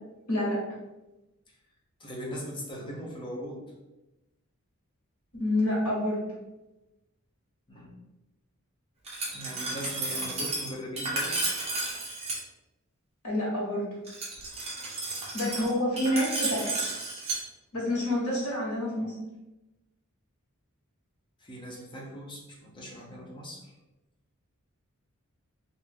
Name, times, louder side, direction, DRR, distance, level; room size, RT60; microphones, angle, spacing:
voice 1, 0.3-0.6 5.3-6.2 13.2-13.9 15.3-16.8 17.7-19.1, left 1 dB, 85° left, -4 dB, 1.4 m, -28 dB
voice 2, 2.0-3.7 7.7-7.9 9.3-11.4 21.4-23.7, equal, 20° left, -2 dB, 0.7 m, -39 dB
Glass, 9.0-12.4 14.1-17.4, right 2 dB, 30° right, 0.7 m, -33 dB
3.0 x 2.6 x 3.5 m, 1.0 s
head